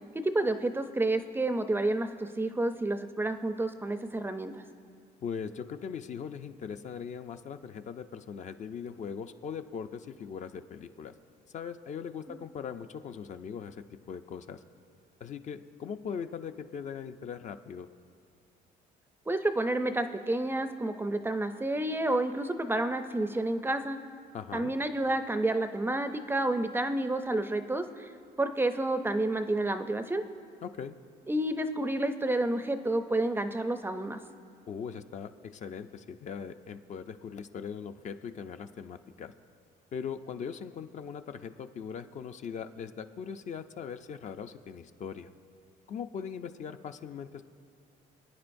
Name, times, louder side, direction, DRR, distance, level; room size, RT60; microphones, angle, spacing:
voice 1, 0.1-4.6 12.3-12.4 19.3-24.0 24.5-28.1 28.4-30.2 31.3-34.2, right 2 dB, 15° right, 9 dB, 0.5 m, -30 dB
voice 2, 5.2-11.1 11.5-14.6 15.2-17.9 24.3-24.7 30.6-30.9 34.7-39.3 39.9-45.3 45.9-47.4, left 7 dB, 45° left, 8 dB, 0.5 m, -40 dB
25.5 x 9.5 x 2.6 m, 2.3 s
cardioid pair, 110°, 17 cm